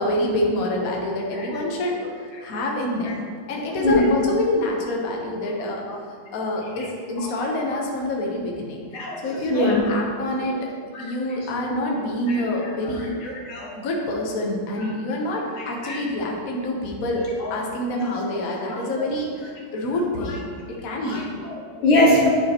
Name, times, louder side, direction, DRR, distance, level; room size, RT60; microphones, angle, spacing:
voice 1, 0.0-2.0 2.4-3.2 3.5-8.8 9.2-10.7 11.0-13.2 13.8-20.4 20.7-21.3, left 1 dB, 50° left, -1 dB, 1.3 m, -26 dB
voice 2, 3.7-4.1 5.9-6.0 6.8-6.9 7.2-7.3 8.9-9.8 10.4-10.6 10.9-11.0 12.3-12.4 13.4-13.7 15.8-16.0 17.4-17.5 18.0-18.2 18.7-18.8 21.0-22.3, left 1 dB, 80° left, -3 dB, 2.3 m, -23 dB
9.9 x 6.7 x 3.0 m, 2.1 s
omnidirectional pair, 2.3 m